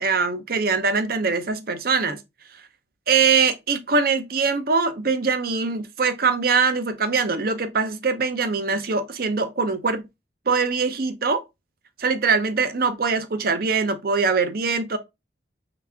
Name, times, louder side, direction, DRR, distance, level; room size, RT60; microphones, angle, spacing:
voice 1, 0.0-2.2 3.1-10.1 10.5-11.4 12.0-15.0, right 5 dB, 55° right, 0.7 m, -22 dB
4.1 x 3.3 x 3.4 m
head